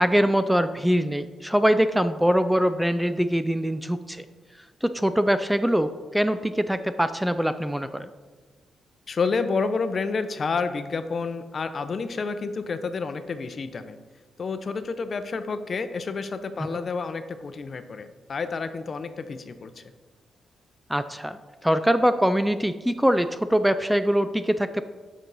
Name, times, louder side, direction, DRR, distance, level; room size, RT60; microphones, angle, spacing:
voice 1, 0.0-4.3 4.8-8.1 20.9-24.8, equal, 5° right, 11 dB, 0.4 m, -23 dB
voice 2, 9.1-14.0 14.4-19.8, left 4 dB, 45° left, 10 dB, 0.6 m, -29 dB
9.9 x 6.2 x 4.0 m, 1.3 s
cardioid pair, 105°, 0 cm